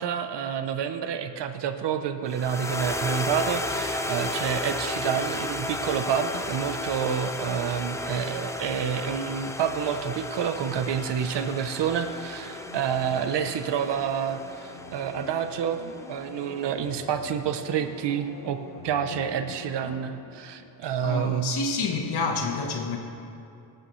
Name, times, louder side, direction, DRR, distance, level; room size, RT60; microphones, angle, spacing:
voice 1, 0.0-15.8 16.1-18.6 18.8-21.5, right 8 dB, 65° right, 8 dB, 0.8 m, -28 dB
sound 1, 2.3-16.7, left 2 dB, 5° left, 0.4 m, -34 dB
sound 2, 12.0-21.4 21.8-21.9, left 2 dB, 85° left, 2.4 m, -45 dB
voice 2, 21.0-23.0, left 3 dB, 60° left, 2 dB, 1.3 m, -28 dB
25.5 x 8.9 x 3.1 m, 2.6 s
wide cardioid pair, 150°, 44 cm